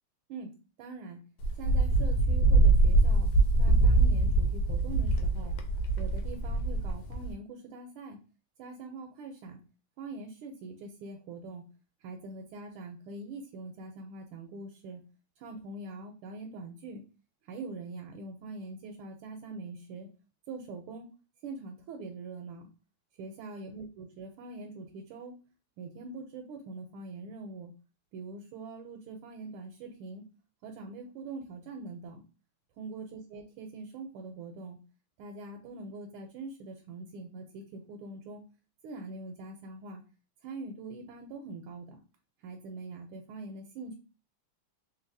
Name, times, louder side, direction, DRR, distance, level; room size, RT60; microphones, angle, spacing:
voice 1, 0.8-1.2 1.6-3.3 3.6-5.6 6.0-8.2 8.6-9.6 10.0-11.6 12.0-15.0 15.4-17.0 17.4-20.1 20.5-21.1 21.4-22.7 23.2-25.4 25.8-27.7 28.1-30.2 30.6-32.2 32.8-34.8 35.2-38.4 38.8-40.0 40.4-42.0 42.4-44.0, right 3 dB, 80° right, 3 dB, 1.5 m, -43 dB
Wind, 1.4-7.3, right 2 dB, 75° left, 1.3 m, -24 dB
3.4 x 2.8 x 2.6 m, 0.34 s
omnidirectional pair, 2.4 m